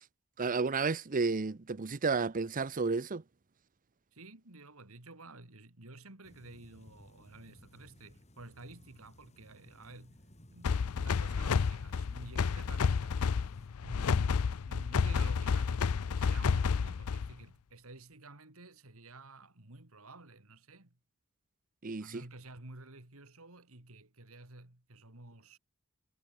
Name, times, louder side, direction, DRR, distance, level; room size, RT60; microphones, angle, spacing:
voice 1, 0.4-3.2 21.8-22.2, right 4 dB, 40° right, 0.7 m, -32 dB
voice 2, 4.1-13.3 13.8-20.9 22.0-25.6, right 2 dB, 65° right, 3.0 m, -52 dB
sound 1, 6.2-13.7, equal, 30° left, 5.1 m, -59 dB
sound 2, 10.6-17.4, left 5 dB, 75° left, 0.5 m, -30 dB
head